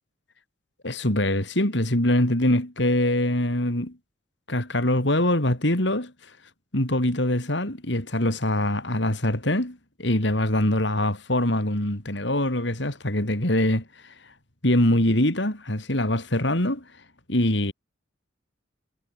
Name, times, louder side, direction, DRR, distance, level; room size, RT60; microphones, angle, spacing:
voice 1, 0.8-4.0 4.5-6.1 6.7-14.1 14.6-16.8 17.3-17.7, left 1 dB, 65° left, 4.4 m, -23 dB
head